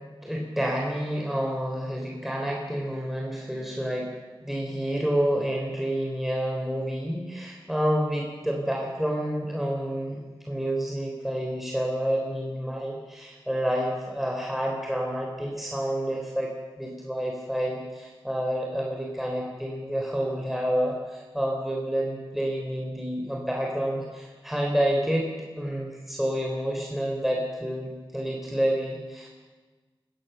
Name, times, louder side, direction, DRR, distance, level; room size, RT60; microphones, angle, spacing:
voice 1, 0.2-4.1 4.4-16.5 16.8-29.3, equal, ahead, -1 dB, 3.9 m, -29 dB
23.5 x 17.0 x 6.9 m, 1.3 s
wide cardioid pair, 55°, 9 cm